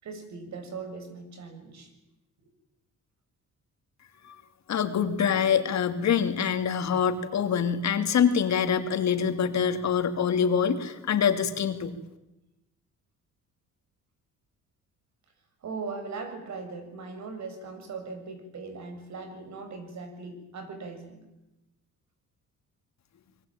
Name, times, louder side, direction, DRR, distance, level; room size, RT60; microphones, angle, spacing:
voice 1, 0.0-1.9 15.6-21.2, right 4 dB, 65° right, 7 dB, 7.0 m, -39 dB
voice 2, 4.7-12.0, left 7 dB, 65° left, 8 dB, 2.9 m, -25 dB
25.5 x 23.0 x 9.0 m, 0.95 s
cardioid pair, 90°, 30 cm